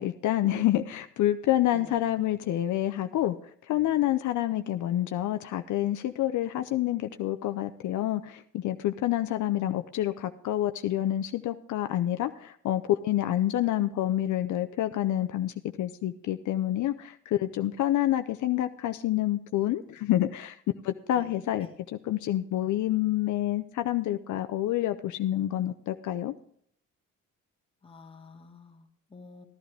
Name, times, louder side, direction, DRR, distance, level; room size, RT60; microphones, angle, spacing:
voice 1, 0.0-3.4 3.7-20.6 20.8-26.3, left 13 dB, 75° left, 8 dB, 0.7 m, -28 dB
voice 2, 1.7-2.0 13.6-13.7 21.1-21.8 27.8-29.5, left 3 dB, 20° left, 1 dB, 2.0 m, -50 dB
13.0 x 12.0 x 3.4 m, 0.62 s
cardioid pair, 90°, 30 cm